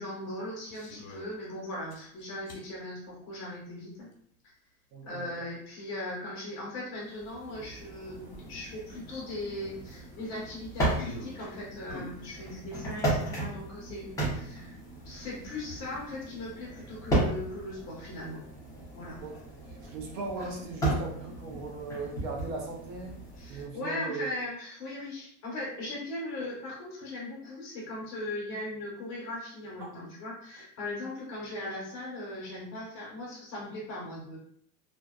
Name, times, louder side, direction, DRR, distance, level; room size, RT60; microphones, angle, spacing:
voice 1, 0.0-4.1 5.0-14.8 15.0-18.5 18.9-19.2 23.4-34.4, left 1 dB, 35° left, -4 dB, 1.0 m, -39 dB
sound 1, 0.7-1.4 1.9-2.7 4.1-4.2 6.9-7.0 7.2-7.3 7.8-8.0 9.6-11.5 11.9-13.3, left 2 dB, 70° left, 1.1 m, -46 dB
voice 2, 4.9-5.4 19.2-23.1 23.5-24.3 29.8-29.9, right 3 dB, 55° right, -1 dB, 0.7 m, -38 dB
sound 2, 7.1-23.7, right 1 dB, 5° left, 0.6 m, -35 dB
2.5 x 2.3 x 2.3 m, 0.65 s
supercardioid pair, 155°, 47 cm